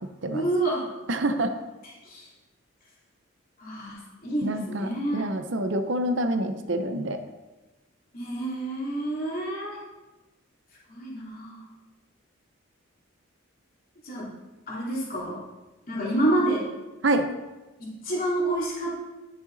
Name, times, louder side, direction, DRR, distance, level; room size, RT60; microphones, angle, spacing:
voice 1, 0.3-0.9 1.8-2.3 3.6-5.3 8.1-9.8 10.9-11.6 14.0-14.3 14.7-15.4 15.9-16.7 17.8-19.0, right 1 dB, 40° left, -6 dB, 3.0 m, -28 dB
voice 2, 1.1-1.5 4.4-7.2 17.0-17.3, right 1 dB, 60° right, 7 dB, 0.8 m, -26 dB
11.5 x 6.7 x 4.0 m, 1.1 s
head